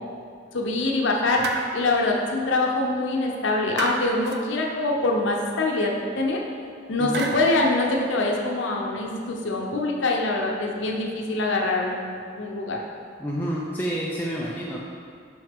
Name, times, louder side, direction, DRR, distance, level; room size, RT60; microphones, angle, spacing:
voice 1, 0.5-6.4 6.9-12.8, left 2 dB, 80° left, -1 dB, 0.7 m, -24 dB
sound 1, 1.4-2.1 3.8-4.4 7.1-7.7, right 3 dB, 60° right, 0.5 m, -31 dB
voice 2, 13.2-14.8, equal, 10° left, -5 dB, 0.5 m, -29 dB
6.1 x 5.7 x 3.6 m, 2.3 s
head